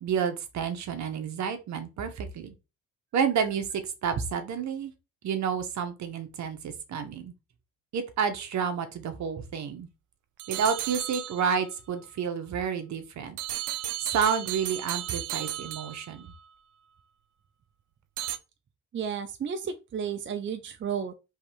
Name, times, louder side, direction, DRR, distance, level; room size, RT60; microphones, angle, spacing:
voice 1, 0.0-2.5 3.1-4.9 5.2-7.3 7.9-9.9 10.5-13.4 14.0-16.3, right 6 dB, 65° right, 1.1 m, -30 dB
sound 1, 10.4-11.7 13.4-16.4 18.2-18.4, right 13 dB, 90° right, 0.6 m, -34 dB
voice 2, 18.9-21.1, right 7 dB, 40° right, 0.6 m, -32 dB
3.6 x 3.2 x 4.5 m
cardioid pair, 90°, 30 cm